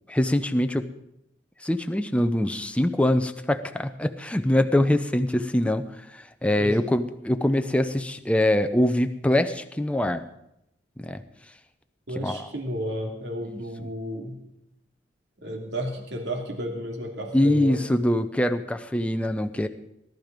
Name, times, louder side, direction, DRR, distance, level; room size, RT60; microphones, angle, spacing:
voice 1, 0.1-0.9 1.6-5.8 6.4-10.2 11.0-11.2 12.2-12.4 13.5-13.6 17.3-19.7, left 1 dB, 5° left, 8 dB, 0.7 m, -23 dB
voice 2, 6.6-6.9 12.1-14.4 15.4-17.8, equal, 70° right, 2 dB, 2.7 m, -32 dB
18.0 x 12.0 x 5.2 m, 0.82 s
head